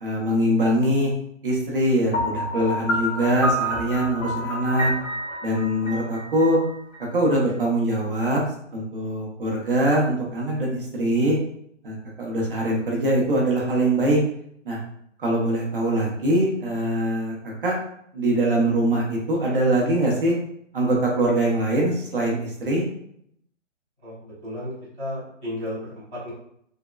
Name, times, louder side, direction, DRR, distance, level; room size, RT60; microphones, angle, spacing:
voice 1, 0.0-1.1 1.4-4.9 5.4-6.6 7.1-8.4 8.7-11.4 11.8-14.2 14.6-14.8 15.2-17.3 17.6-17.8 18.1-20.3 20.7-22.8, right 1 dB, 45° right, -2 dB, 0.8 m, -22 dB
Piano, 2.1-7.0, equal, 90° left, 1.2 m, -28 dB
voice 2, 24.0-26.3, left 1 dB, 5° right, -22 dB, 0.6 m, -34 dB
3.5 x 2.1 x 2.3 m, 0.70 s
hypercardioid pair, 165°, 38 cm